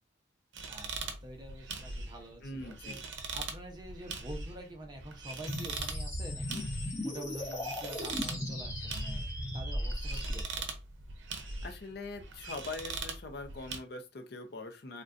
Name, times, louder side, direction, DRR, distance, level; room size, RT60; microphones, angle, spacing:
clean swing squeaking, 0.5-13.8, right 4 dB, 70° right, 0.6 m, -42 dB
voice 1, 0.7-6.7 7.0-9.3 9.5-10.6, right 1 dB, 20° right, 2 dB, 0.6 m, -47 dB
voice 2, 2.4-3.0 11.6-15.0, left 3 dB, 55° left, 5 dB, 0.5 m, -42 dB
sound 1, 5.5-10.4, equal, 15° left, 0.8 m, -36 dB
3.8 x 2.2 x 2.4 m, 0.27 s
head